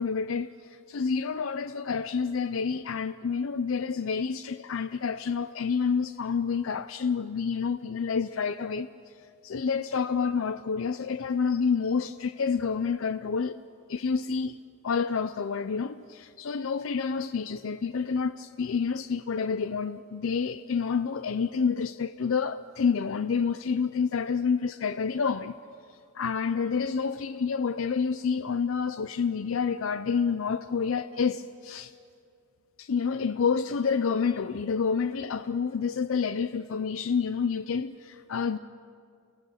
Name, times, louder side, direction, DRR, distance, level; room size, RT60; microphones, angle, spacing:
voice 1, 0.0-8.9 9.4-13.5 13.9-14.6 14.8-25.5 25.9-31.9 32.8-38.6, left 5 dB, 75° left, 0.5 m, -28 dB
29.0 x 16.5 x 6.5 m
head